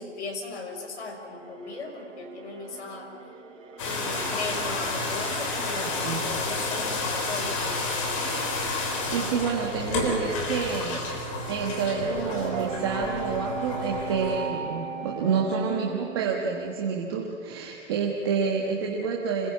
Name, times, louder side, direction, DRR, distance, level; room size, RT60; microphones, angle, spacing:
voice 1, 0.0-3.1 3.8-8.2, left 3 dB, 60° left, 2 dB, 6.2 m, -37 dB
sound 1, 1.0-17.3, right 6 dB, 80° right, 3.3 m, -43 dB
sound 2, 3.8-14.5, left 3 dB, 25° left, 3.5 m, -31 dB
sound 3, 5.5-16.1, right 2 dB, 40° right, 3.1 m, -40 dB
voice 2, 5.8-6.2 9.1-11.0 11.5-19.5, right 5 dB, 20° right, -1 dB, 1.3 m, -28 dB
26.0 x 20.0 x 8.5 m, 2.6 s
hypercardioid pair, 180°, 37 cm